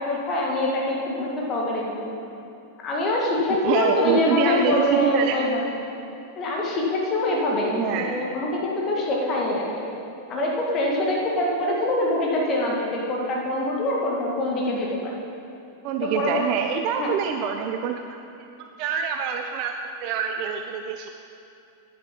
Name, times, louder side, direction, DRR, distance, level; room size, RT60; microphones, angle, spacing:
voice 1, 0.0-2.0 2.8-5.6 6.4-9.8 10.3-15.1 16.0-16.4 17.0-17.1, left 1 dB, 30° left, -2 dB, 1.9 m, -24 dB
voice 2, 0.9-1.3 3.6-5.4 7.6-8.2 11.0-11.1 15.8-18.5 18.8-19.7 20.0-21.1, right 7 dB, 45° right, 5 dB, 0.5 m, -26 dB
10.5 x 7.0 x 5.4 m, 2.7 s
figure-of-eight pair, 90°, 0 cm